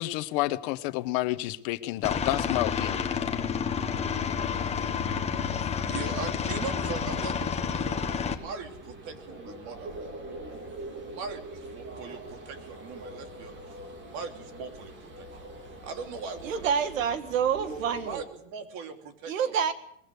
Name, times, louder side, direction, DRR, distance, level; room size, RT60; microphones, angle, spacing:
voice 1, 0.0-3.1, left 17 dB, 50° left, 13 dB, 1.1 m, -29 dB
Aircraft, 2.0-8.3, left 7 dB, 15° left, 1.4 m, -30 dB
sound 1, 2.3-7.5, right 9 dB, 5° right, 5.5 m, -48 dB
sound 2, 3.8-18.2, right 2 dB, 30° right, 3.3 m, -44 dB
voice 2, 5.8-10.1 11.1-13.6 14.1-15.5 15.8-17.0 18.0-19.5, right 5 dB, 50° right, 6 dB, 3.1 m, -40 dB
voice 3, 16.4-18.2 19.3-19.7, right 7 dB, 90° right, 11 dB, 1.9 m, -27 dB
21.5 x 15.5 x 8.2 m, 0.73 s
supercardioid pair, 135°, 38 cm